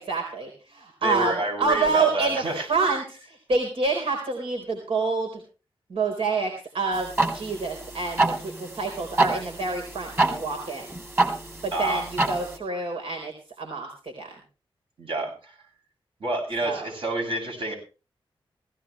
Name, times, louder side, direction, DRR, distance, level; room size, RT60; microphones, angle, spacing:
voice 1, 0.0-5.4 5.9-10.9 11.6-13.3 13.6-14.3 16.6-16.9, right 4 dB, 85° right, 2 dB, 4.3 m, -27 dB
voice 2, 1.0-2.7 11.7-12.1 15.0-15.5 16.2-17.7, right 2 dB, 65° right, 2 dB, 7.8 m, -28 dB
sound 1, 6.9-12.6, right 2 dB, 25° right, 3.7 m, -27 dB
18.5 x 16.5 x 3.3 m, 0.35 s
wide cardioid pair, 165°, 9 cm